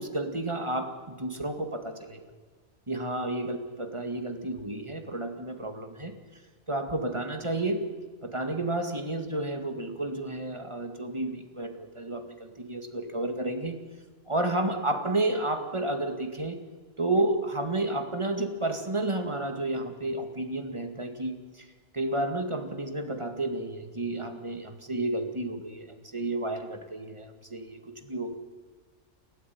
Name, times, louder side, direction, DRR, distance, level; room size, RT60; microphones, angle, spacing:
voice 1, 0.0-2.2 2.9-6.2 6.7-7.9 8.2-13.8 14.3-16.6 17.0-21.4 21.9-28.3, right 2 dB, 20° right, 6 dB, 2.1 m, -31 dB
28.5 x 13.0 x 9.5 m, 1.4 s
omnidirectional pair, 1.4 m